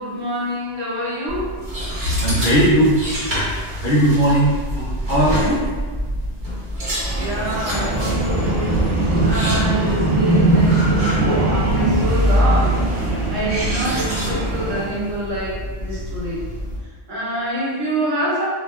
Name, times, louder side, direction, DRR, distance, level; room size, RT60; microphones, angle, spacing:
voice 1, 0.0-1.6 7.1-8.8 9.2-16.4 17.1-18.5, right 1 dB, 85° right, -6 dB, 1.2 m, -26 dB
sound 1, 1.3-16.8, left 1 dB, 60° right, 1.0 m, -26 dB
voice 2, 2.0-3.0 3.3-3.4 3.8-5.6, right 1 dB, 55° left, -6 dB, 0.6 m, -18 dB
sound 2, 7.0-14.8, right 2 dB, 10° right, 0.7 m, -21 dB
2.3 x 2.2 x 3.4 m, 1.5 s
omnidirectional pair, 1.3 m